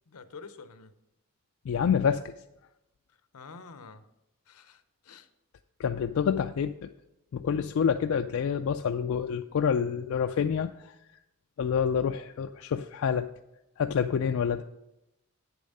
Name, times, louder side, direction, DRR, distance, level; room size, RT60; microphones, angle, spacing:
voice 1, 0.1-0.9 3.3-4.0 4.5-5.3, left 4 dB, 90° left, 11 dB, 0.7 m, -48 dB
voice 2, 1.7-2.3 5.8-6.9 7.3-10.7 11.6-13.3 13.8-14.6, left 7 dB, 65° left, 7 dB, 0.3 m, -27 dB
8.6 x 7.1 x 5.4 m, 0.90 s
head